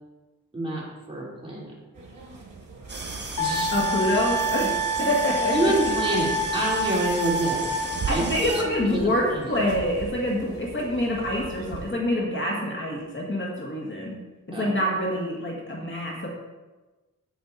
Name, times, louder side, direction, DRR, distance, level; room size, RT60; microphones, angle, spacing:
voice 1, 0.5-1.7 3.4-3.7 5.5-7.8 8.1-9.5 14.5-14.7, right 1 dB, 15° right, -5 dB, 3.4 m, -27 dB
sound 1, 1.9-11.9, right 4 dB, 75° right, 3.2 m, -40 dB
sound 2, 2.9-8.6, right 3 dB, 30° right, 1.3 m, -36 dB
Wind instrument woodwind instrument, 3.4-8.2, right 1 dB, 55° left, 1.8 m, -27 dB
voice 2, 3.7-4.7 5.0-5.7 8.1-14.2 14.5-16.3, left 1 dB, 35° left, -2 dB, 1.7 m, -26 dB
9.2 x 8.3 x 4.0 m, 1.2 s
wide cardioid pair, 85°, 33 cm